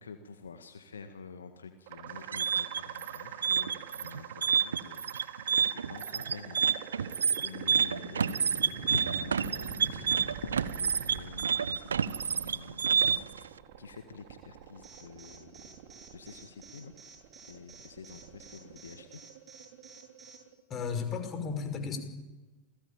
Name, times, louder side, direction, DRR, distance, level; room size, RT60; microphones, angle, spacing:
voice 1, 0.0-13.4 13.8-15.7 16.1-16.9 17.5-19.2, left 5 dB, 70° left, 7 dB, 1.8 m, -47 dB
sound 1, 1.9-20.6, right 9 dB, 50° right, 3.1 m, -45 dB
sound 2, 2.1-13.4, right 7 dB, 70° right, 0.9 m, -28 dB
Alarm, 14.8-20.4, right 4 dB, 15° right, 7.8 m, -52 dB
voice 2, 20.7-22.0, left 5 dB, 25° left, 7 dB, 5.6 m, -34 dB
28.0 x 20.0 x 9.1 m, 1.2 s
figure-of-eight pair, 90°, 0 cm